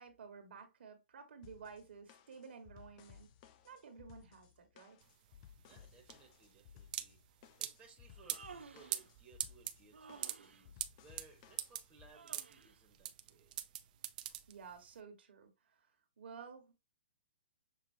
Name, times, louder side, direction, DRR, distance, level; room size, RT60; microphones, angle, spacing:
voice 1, 0.0-3.3 3.6-5.0 14.5-15.9 16.2-16.7, right 5 dB, 70° right, 1.5 m, -53 dB
sound 1, 1.4-12.1, left 9 dB, 35° left, 0.5 m, -60 dB
sound 2, 5.0-14.9, right 12 dB, 45° right, 0.5 m, -44 dB
voice 2, 5.6-7.2 7.6-13.5, right 4 dB, 15° right, 1.4 m, -63 dB
Human voice, 8.0-9.1 9.9-10.7 12.1-12.8, right 5 dB, 90° right, 0.6 m, -55 dB
6.7 x 2.8 x 2.7 m
hypercardioid pair, 140°, 6 cm